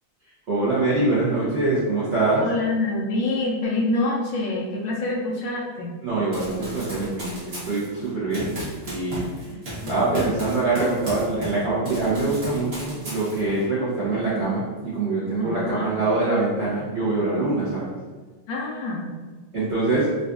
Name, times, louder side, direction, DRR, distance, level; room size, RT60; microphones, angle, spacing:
voice 1, 0.5-2.4 6.0-9.2 9.9-17.9 19.5-20.1, right 2 dB, 80° right, -10 dB, 0.6 m, -24 dB
voice 2, 2.4-5.9 9.4-9.6 9.8-9.9 15.4-15.9 18.5-19.2, left 2 dB, 75° left, -3 dB, 1.1 m, -26 dB
Run, 6.3-11.6 11.9-13.6, right 1 dB, 45° right, 0.8 m, -35 dB
3.9 x 2.5 x 2.3 m, 1.4 s
omnidirectional pair, 2.4 m